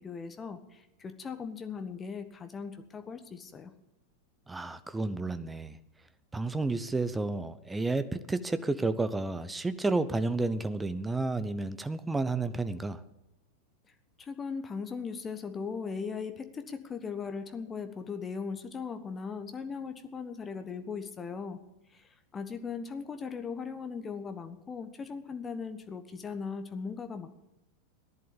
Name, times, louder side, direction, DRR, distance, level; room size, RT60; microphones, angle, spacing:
voice 1, 0.0-3.7 14.2-21.6 21.9-22.0 22.3-27.4, left 5 dB, 20° left, 8 dB, 1.2 m, -38 dB
voice 2, 4.5-5.8 6.3-13.0, right 3 dB, 10° right, 13 dB, 0.9 m, -31 dB
15.0 x 10.5 x 7.1 m, 0.90 s
figure-of-eight pair, 90°, 0 cm